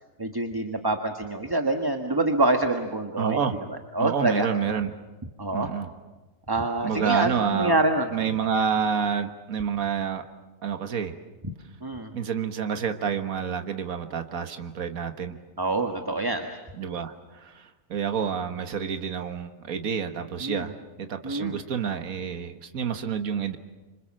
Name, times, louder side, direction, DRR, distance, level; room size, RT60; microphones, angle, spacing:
voice 1, 0.2-3.4 3.9-4.5 5.4-5.7 6.5-8.1 11.8-12.1 15.6-16.5 20.4-20.7 21.2-21.6, right 2 dB, 15° right, 5 dB, 1.4 m, -26 dB
voice 2, 3.2-3.6 4.0-4.9 5.5-5.9 6.8-7.8 8.1-10.2 10.6-11.2 12.1-15.4 16.8-20.7 21.0-23.6, right 7 dB, 75° right, 7 dB, 1.8 m, -28 dB
26.5 x 26.0 x 7.6 m, 1.2 s
omnidirectional pair, 1.5 m